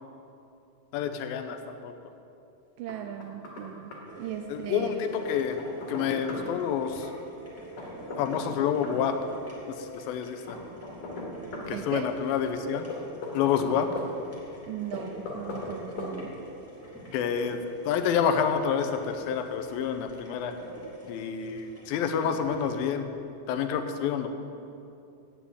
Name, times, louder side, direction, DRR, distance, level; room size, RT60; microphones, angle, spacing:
voice 1, 0.9-1.6 1.8-1.9 4.5-5.6 5.9-7.1 8.2-9.2 9.7-10.6 11.7-12.9 13.3-13.9 17.1-20.5 21.1-23.1 23.5-24.3, left 8 dB, 85° left, 7 dB, 2.4 m, -28 dB
voice 2, 2.8-5.1 11.7-12.1 14.7-16.3, right 10 dB, 85° right, 5 dB, 1.9 m, -37 dB
Knock, 2.9-3.7 3.9-4.0 5.2-6.5 7.8-9.0 10.5-11.7 12.9-14.1 14.9-15.7 16.0-16.1, left 3 dB, 65° left, 3.2 m, -38 dB
sound 1, 4.1-22.7, right 1 dB, 5° right, 1.0 m, -45 dB
8.5 x 7.5 x 8.5 m, 2.6 s
omnidirectional pair, 4.3 m